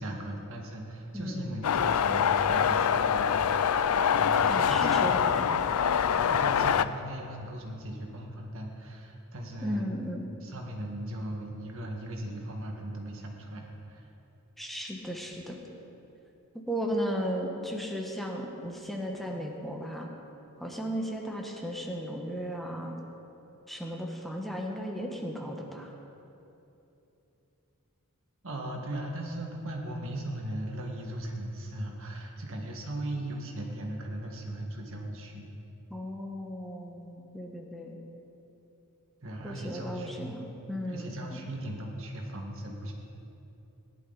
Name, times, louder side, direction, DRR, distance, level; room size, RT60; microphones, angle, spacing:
voice 1, 0.0-5.8 6.2-9.9 10.4-14.1 28.4-35.5 39.2-40.4 40.8-42.9, right 1 dB, 65° right, 1 dB, 1.7 m, -38 dB
voice 2, 1.1-1.6 4.5-5.5 9.6-10.3 14.6-15.6 16.7-20.1 20.6-23.0 23.7-25.9 35.9-38.0 39.4-41.4, equal, ahead, 0 dB, 1.1 m, -35 dB
sound 1, 1.6-6.9, left 7 dB, 80° left, 0.4 m, -25 dB
17.5 x 11.0 x 4.0 m, 3.0 s
head